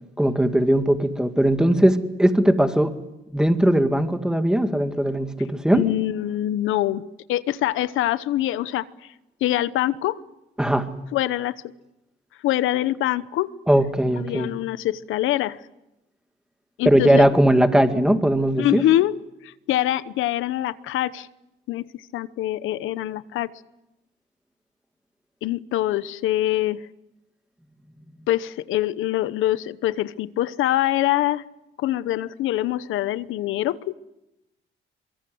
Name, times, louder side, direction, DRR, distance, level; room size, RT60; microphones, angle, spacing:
voice 1, 0.2-2.9 3.3-5.8 10.6-10.9 13.7-14.5 16.9-18.8, right 1 dB, 5° right, 2.3 m, -19 dB
voice 2, 5.7-7.0 7.3-8.9 9.4-10.2 11.1-11.6 12.4-13.5 14.1-15.6 16.8-17.3 18.6-19.2 19.4-21.3 21.7-21.8 22.1-23.5 25.4-26.8 28.3-31.4 31.8-33.9, left 14 dB, 85° left, 1.0 m, -24 dB
24.0 x 23.0 x 7.9 m
cardioid pair, 90°, 20 cm